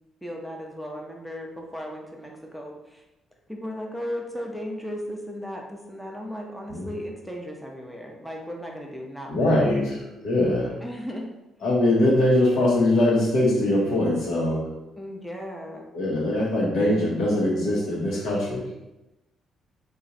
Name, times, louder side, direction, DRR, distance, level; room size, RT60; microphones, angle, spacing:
voice 1, 0.2-3.0 3.5-9.7 10.8-11.3 15.0-15.9, equal, ahead, 0 dB, 0.6 m, -36 dB
voice 2, 9.3-10.0 10.2-10.7 11.6-14.7 15.9-18.8, left 1 dB, 80° left, -3 dB, 1.1 m, -22 dB
2.9 x 2.5 x 3.8 m, 0.96 s
cardioid pair, 90°, 0 cm